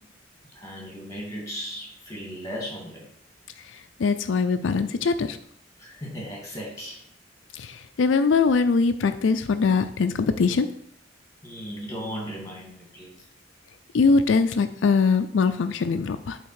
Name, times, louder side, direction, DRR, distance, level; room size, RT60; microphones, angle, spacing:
voice 1, 0.5-3.0 5.8-7.0 11.4-13.2, equal, 20° left, -1 dB, 2.1 m, -36 dB
voice 2, 4.0-5.4 7.5-10.7 13.9-16.4, left 4 dB, 85° left, 9 dB, 0.4 m, -22 dB
8.3 x 3.6 x 4.7 m, 0.66 s
head